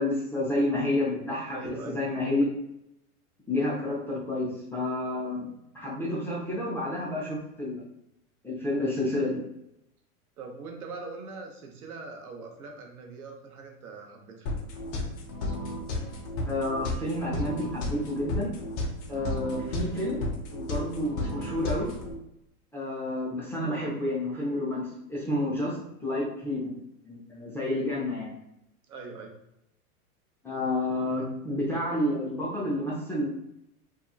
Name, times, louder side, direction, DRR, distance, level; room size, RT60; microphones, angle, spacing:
voice 1, 0.0-2.4 3.5-5.5 5.7-7.8 8.4-9.4 16.5-18.5 19.1-20.2 20.5-21.9 22.7-26.8 27.0-28.4 30.4-33.3, left 1 dB, 5° left, -7 dB, 0.5 m, -30 dB
voice 2, 1.5-2.0 10.4-14.5 28.9-29.3, right 3 dB, 75° right, 2 dB, 0.8 m, -41 dB
sound 1, 14.5-22.1, left 2 dB, 50° left, 0.7 m, -33 dB
2.8 x 2.4 x 2.3 m, 0.82 s
hypercardioid pair, 110°, 44 cm